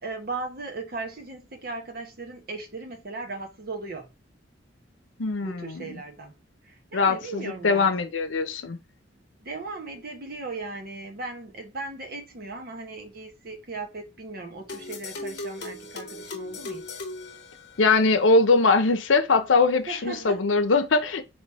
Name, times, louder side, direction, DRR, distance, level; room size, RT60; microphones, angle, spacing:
voice 1, 0.0-4.1 5.4-6.3 6.6-7.9 9.4-17.0 19.9-20.4, right 3 dB, 50° right, 1.0 m, -37 dB
voice 2, 5.2-6.0 6.9-8.8 17.8-21.2, left 3 dB, 85° left, 0.7 m, -22 dB
sound 1, 14.7-18.2, left 2 dB, 60° left, 0.8 m, -38 dB
3.4 x 3.0 x 4.1 m
head